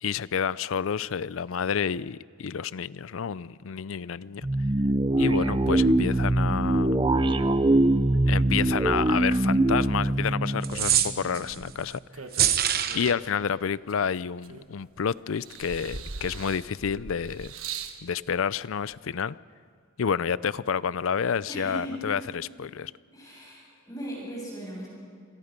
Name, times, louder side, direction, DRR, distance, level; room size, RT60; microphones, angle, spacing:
voice 1, 0.0-4.5 5.2-7.0 8.1-12.0 12.9-17.5 18.0-19.4 20.0-22.9, left 7 dB, 75° left, 19 dB, 0.5 m, -29 dB
sound 1, 4.4-11.6, right 2 dB, 25° right, 0.5 m, -23 dB
sound 2, 10.6-11.6 12.3-13.1, right 10 dB, 45° right, 1.1 m, -24 dB
sound 3, 11.5-13.3 13.9-15.0 15.4-18.0 18.9-19.0, right 5 dB, 85° right, 1.3 m, -40 dB
voice 2, 21.5-22.0 23.1-24.9, right 1 dB, 15° left, -4 dB, 7.4 m, -38 dB
28.5 x 21.5 x 5.3 m, 2.2 s
head